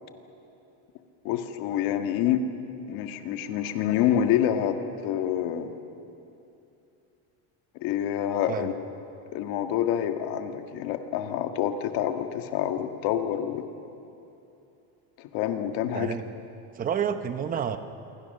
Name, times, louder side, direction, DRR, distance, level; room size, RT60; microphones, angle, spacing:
voice 1, 1.2-2.4 2.9-5.7 7.8-8.7 9.3-13.7 15.2-16.1, left 10 dB, 60° left, 6 dB, 1.8 m, -27 dB
voice 2, 15.9-16.2 16.7-17.8, right 8 dB, 20° right, 9 dB, 0.8 m, -29 dB
27.5 x 23.5 x 6.7 m, 2.7 s
cardioid pair, 175°, 42 cm